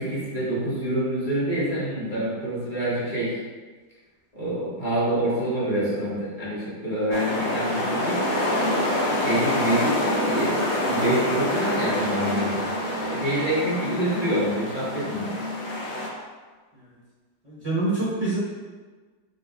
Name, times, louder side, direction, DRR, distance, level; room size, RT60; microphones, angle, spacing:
voice 1, 0.0-3.4 4.3-8.2 9.2-12.7 13.0-15.3, right 1 dB, 30° left, -11 dB, 1.2 m, -26 dB
sound 1, 7.1-16.1, left 1 dB, 85° left, 1.5 m, -26 dB
voice 2, 17.4-18.4, right 2 dB, 50° right, -9 dB, 0.4 m, -26 dB
4.0 x 2.5 x 3.3 m, 1.4 s
omnidirectional pair, 2.0 m